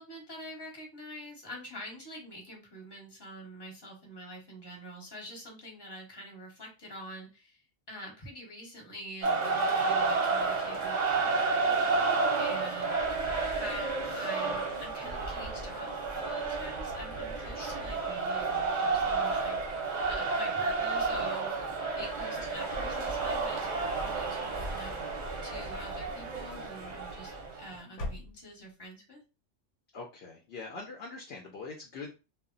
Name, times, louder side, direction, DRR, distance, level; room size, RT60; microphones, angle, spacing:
voice 1, 0.0-7.6 7.9-29.2, equal, 25° left, 0 dB, 0.9 m, -46 dB
sound 1, 9.2-27.7, right 4 dB, 45° right, 0.6 m, -31 dB
voice 2, 17.5-17.8 22.4-22.5 29.9-32.1, left 3 dB, 65° left, 0 dB, 0.7 m, -43 dB
sound 2, 24.1-24.9 25.4-26.1 27.0-27.5 27.9-28.8, left 1 dB, 85° left, 1.0 m, -43 dB
2.1 x 2.0 x 3.7 m, 0.30 s
omnidirectional pair, 1.2 m